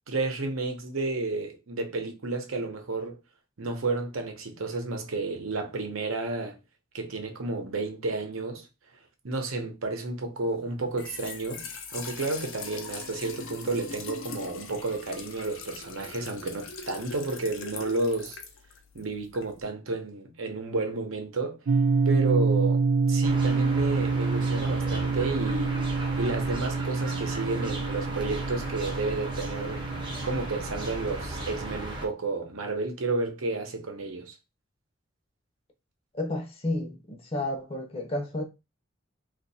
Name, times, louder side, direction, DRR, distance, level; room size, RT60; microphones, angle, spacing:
voice 1, 0.1-3.2 3.6-6.6 6.9-8.7 9.2-18.4 18.9-21.6 22.1-25.8 26.2-29.8 30.2-34.3, right 3 dB, 80° right, 0.8 m, -31 dB
Trickle dribble / Fill (with liquid), 10.8-19.6, left 5 dB, 70° left, 0.7 m, -41 dB
sound 1, 21.7-31.8, right 4 dB, 65° right, 0.3 m, -27 dB
sound 2, 23.2-32.1, right 1 dB, 25° right, 0.6 m, -36 dB
voice 2, 36.1-38.4, left 1 dB, 30° left, 0.6 m, -31 dB
2.7 x 2.4 x 4.0 m
head